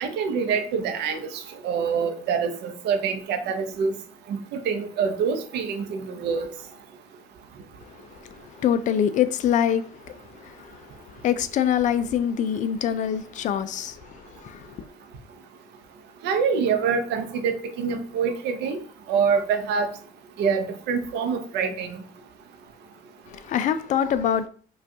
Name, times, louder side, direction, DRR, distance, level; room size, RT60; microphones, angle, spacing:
voice 1, 0.0-1.3 1.6-3.9 4.3-4.4 4.7-6.5 16.2-18.8 19.1-19.9 20.4-22.0, right 6 dB, 85° right, 0.6 m, -25 dB
voice 2, 7.8-14.9 23.3-24.5, left 9 dB, 50° left, 0.4 m, -25 dB
4.9 x 2.3 x 2.7 m
cardioid pair, 110°, 17 cm